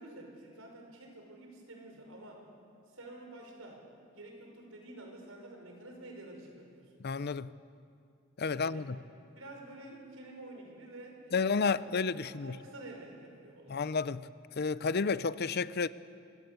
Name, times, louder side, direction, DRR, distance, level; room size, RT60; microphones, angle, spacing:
voice 1, 0.0-2.4 2.9-3.8 4.1-6.9 8.5-8.9 9.3-11.9 12.1-13.9, right 1 dB, 80° right, 5.7 m, -49 dB
voice 2, 7.0-7.5 8.4-9.0 11.3-12.5 13.7-14.3 14.6-15.9, left 4 dB, 50° left, 0.6 m, -31 dB
25.5 x 20.0 x 8.3 m
head